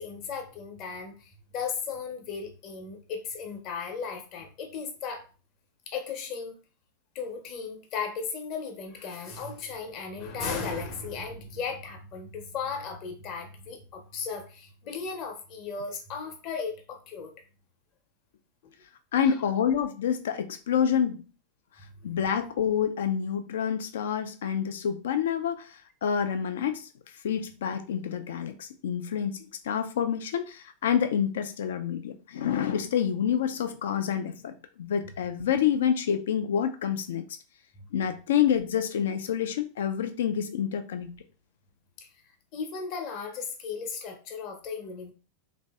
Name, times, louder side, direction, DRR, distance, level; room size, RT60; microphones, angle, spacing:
voice 1, 0.0-5.3 5.9-6.5 7.1-17.3 18.6-18.7 19.2-19.3 22.0-22.1 37.8-37.9 42.0-42.1 42.5-45.1, left 5 dB, 45° left, 4 dB, 0.8 m, -36 dB
voice 2, 19.1-21.2 22.0-26.9 27.2-37.2 37.9-41.1, left 8 dB, 65° left, 8 dB, 0.4 m, -28 dB
3.2 x 2.6 x 2.3 m, 0.35 s
figure-of-eight pair, 90°, 0 cm